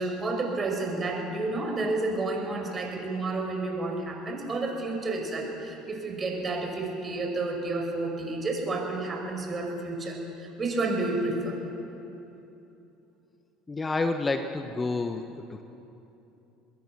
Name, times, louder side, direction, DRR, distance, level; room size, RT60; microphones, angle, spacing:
voice 1, 0.0-11.6, right 2 dB, 30° right, 2 dB, 5.7 m, -30 dB
voice 2, 13.7-15.2 15.5-15.6, left 3 dB, 20° left, 7 dB, 1.2 m, -29 dB
25.5 x 21.0 x 6.1 m, 2.9 s
hypercardioid pair, 70°, 0 cm